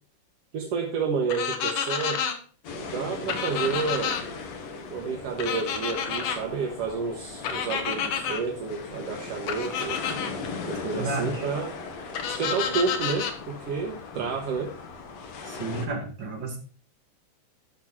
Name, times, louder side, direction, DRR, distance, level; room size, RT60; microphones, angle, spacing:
voice 1, 0.5-2.2 2.8-4.2 4.9-10.0 10.7-11.7 12.3-14.8, right 5 dB, 65° right, 1 dB, 1.7 m, -30 dB
sound 1, 1.3-2.3 3.3-4.2 5.4-6.4 7.4-8.4 9.5-10.3 12.1-13.3, left 7 dB, 75° left, 2.7 m, -29 dB
sound 2, 2.6-15.9, left 4 dB, 60° left, 2.4 m, -38 dB
voice 2, 10.9-11.5 14.2-14.3 15.4-16.6, right 3 dB, 40° right, 0 dB, 2.7 m, -32 dB
10.5 x 6.1 x 4.4 m, 0.42 s
omnidirectional pair, 3.7 m